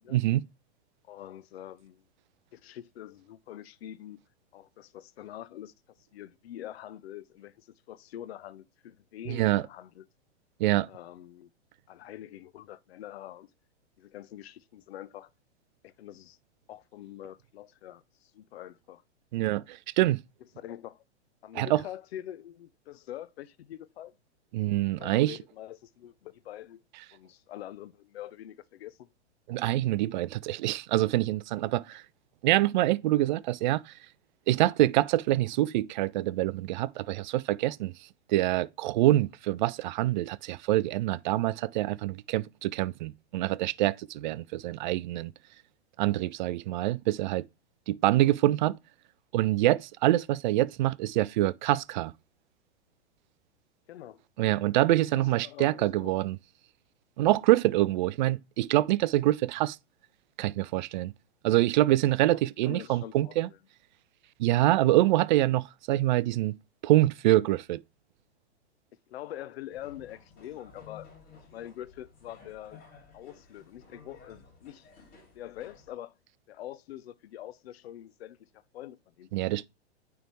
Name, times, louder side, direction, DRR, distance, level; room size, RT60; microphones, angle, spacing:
voice 1, 0.1-0.4 9.3-9.6 10.6-10.9 19.3-20.2 21.5-21.8 24.5-25.4 29.5-32.0 32.4-33.8 34.5-37.9 38.3-45.3 46.0-47.4 47.9-48.8 49.3-52.1 54.4-56.4 57.2-59.8 60.4-61.1 61.4-63.5 64.4-66.6 66.8-67.8 79.3-79.6, right 15 dB, 45° right, 0.4 m, -25 dB
voice 2, 1.1-2.0 2.5-4.2 4.5-5.7 6.1-10.1 10.9-11.5 11.9-13.5 14.0-15.3 15.8-16.4 16.7-19.0 20.6-21.0 21.4-24.2 25.0-26.8 27.1-29.1 48.1-48.3 53.9-54.2 55.1-56.1 62.6-63.6 69.1-71.1 71.5-72.8 73.1-74.9 75.3-76.1 76.5-79.3, left 12 dB, 60° left, 0.7 m, -45 dB
sound 1, 69.7-75.9, left 5 dB, 25° left, 2.5 m, -54 dB
9.0 x 3.5 x 3.1 m
hypercardioid pair, 110°, 35 cm